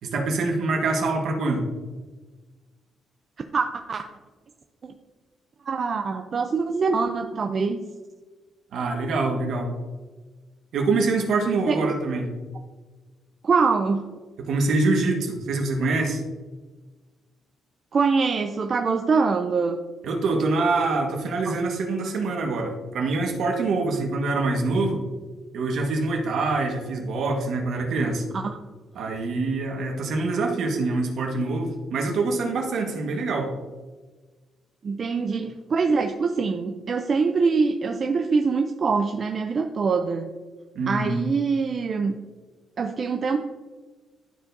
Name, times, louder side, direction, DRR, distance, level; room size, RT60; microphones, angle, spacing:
voice 1, 0.0-1.7 8.7-9.7 10.7-12.3 14.4-16.2 20.0-25.0 25.5-28.2 28.9-33.5 40.7-41.1, right 3 dB, 70° right, 2 dB, 1.4 m, -25 dB
voice 2, 3.5-4.0 4.8-4.9 5.7-7.8 11.7-11.8 13.4-14.1 17.9-19.8 28.3-28.6 34.8-40.3 40.9-42.1 42.8-43.4, right 4 dB, 45° right, 5 dB, 0.5 m, -24 dB
12.0 x 4.5 x 2.7 m, 1.3 s
cardioid pair, 90°, 0 cm